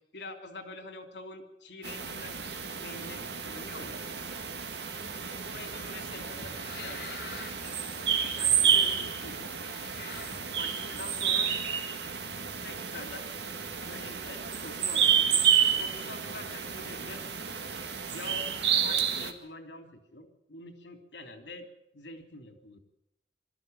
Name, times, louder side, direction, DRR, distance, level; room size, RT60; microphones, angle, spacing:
voice 1, 0.1-3.2 3.5-4.1 5.4-7.2 8.0-9.5 10.5-11.5 12.6-13.3 13.9-17.2 18.1-18.5 18.8-21.7 21.9-22.8, left 2 dB, 90° left, 6 dB, 3.2 m, -45 dB
sound 1, 1.8-19.3, right 8 dB, 75° right, 2.1 m, -30 dB
sound 2, 5.0-11.3, left 4 dB, 65° left, 3.0 m, -48 dB
23.5 x 13.5 x 9.3 m, 0.83 s
head